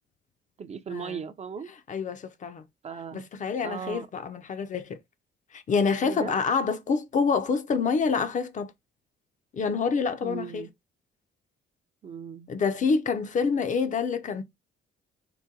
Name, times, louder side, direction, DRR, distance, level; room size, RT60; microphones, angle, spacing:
voice 1, 0.6-1.7 2.8-3.3 3.6-4.1 6.0-6.4 10.2-10.7 12.0-12.5, right 6 dB, 35° right, 0.4 m, -37 dB
voice 2, 1.9-2.6 3.1-5.0 5.5-8.7 9.5-10.7 12.5-14.4, left 5 dB, 40° left, 0.4 m, -27 dB
3.8 x 2.1 x 2.6 m
cardioid pair, 90°, 20 cm